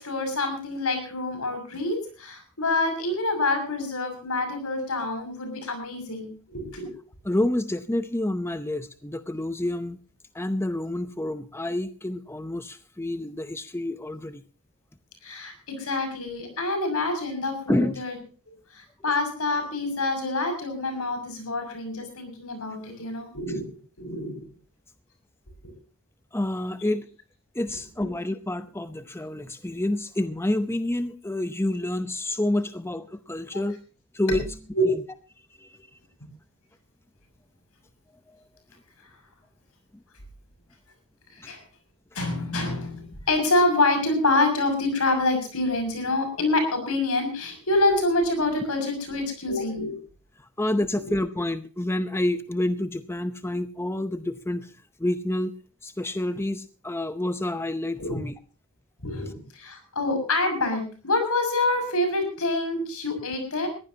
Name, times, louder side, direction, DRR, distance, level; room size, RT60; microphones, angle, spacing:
voice 1, 0.0-6.9 15.2-18.1 18.7-23.6 24.0-24.4 25.6-25.7 34.3-34.4 34.7-34.8 41.5-41.6 42.1-50.0 58.0-58.1 59.0-59.3 59.5-63.7, left 2 dB, 70° left, 7 dB, 6.5 m, -26 dB
voice 2, 7.2-10.0 10.3-14.4 17.7-18.0 26.3-27.1 27.5-33.8 34.1-34.4 35.6-35.8 41.4-41.5 50.4-54.7 55.0-55.5 55.8-58.4, left 1 dB, 10° left, 11 dB, 0.7 m, -28 dB
21.5 x 15.5 x 2.8 m, 0.38 s
head